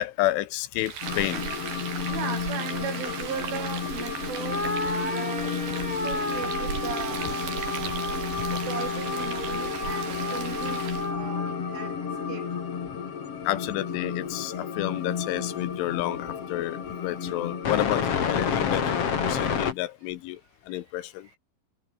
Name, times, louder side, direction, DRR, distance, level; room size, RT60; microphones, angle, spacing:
voice 1, 0.0-1.5 7.2-7.3 13.5-20.4 20.7-21.3, left 15 dB, 85° left, 3.7 m, -30 dB
Frying (food), 0.8-11.1, right 7 dB, 55° right, 5.4 m, -36 dB
sound 1, 1.0-19.7, left 7 dB, 40° left, 2.4 m, -31 dB
voice 2, 2.1-5.6 5.9-7.4 8.4-12.5 20.7-20.8, right 7 dB, 85° right, 7.3 m, -37 dB
sound 2, 4.5-13.0, left 2 dB, 10° left, 1.9 m, -33 dB
omnidirectional pair, 5.5 m